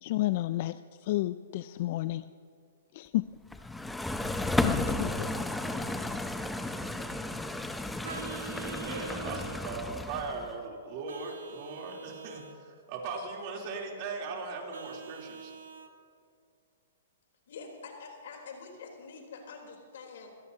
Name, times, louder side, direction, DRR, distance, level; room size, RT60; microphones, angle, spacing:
voice 1, 0.0-2.2 2.9-3.3 4.5-5.3, left 16 dB, 45° left, 14 dB, 0.4 m, -31 dB
sound 1, 3.5-10.5, left 2 dB, 5° left, 0.6 m, -33 dB
Vehicle horn car horn honking, 8.0-9.6 11.1-12.6 14.7-15.9, right 5 dB, 85° right, 1.7 m, -44 dB
voice 2, 8.6-15.5, right 4 dB, 40° right, 0 dB, 3.3 m, -39 dB
voice 3, 17.5-20.3, left 5 dB, 70° left, 2 dB, 3.7 m, -46 dB
25.5 x 17.5 x 2.8 m, 2.2 s
hypercardioid pair, 145°, 0 cm